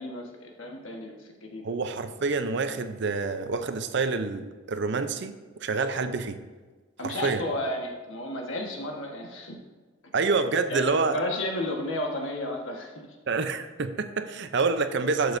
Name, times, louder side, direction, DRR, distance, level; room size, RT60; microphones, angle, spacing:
voice 1, 0.0-1.7 7.0-9.6 10.7-13.1, left 1 dB, 80° left, 1 dB, 1.4 m, -33 dB
voice 2, 1.6-6.4 7.0-7.4 10.1-11.2 13.3-15.4, right 4 dB, 60° right, 10 dB, 0.6 m, -27 dB
11.5 x 6.2 x 2.6 m, 1.3 s
head